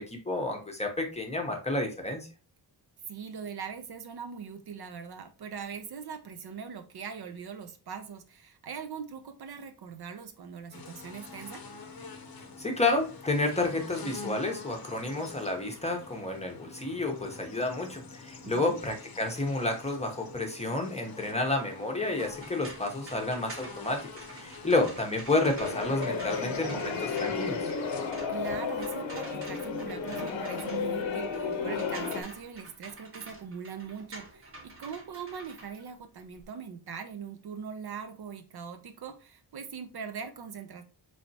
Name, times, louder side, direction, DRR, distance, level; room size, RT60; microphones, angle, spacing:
voice 1, 0.0-2.3 12.6-27.7, left 2 dB, 15° left, 2 dB, 0.7 m, -30 dB
voice 2, 3.1-11.6 18.4-18.8 28.3-40.8, right 6 dB, 60° right, 8 dB, 0.6 m, -41 dB
sound 1, 10.7-28.1, left 4 dB, 55° left, 0.7 m, -46 dB
sound 2, 22.3-36.5, right 2 dB, 30° right, 0.9 m, -48 dB
sound 3, 25.6-32.2, left 5 dB, 90° left, 0.7 m, -33 dB
4.2 x 3.2 x 2.7 m, 0.33 s
wide cardioid pair, 140°, 44 cm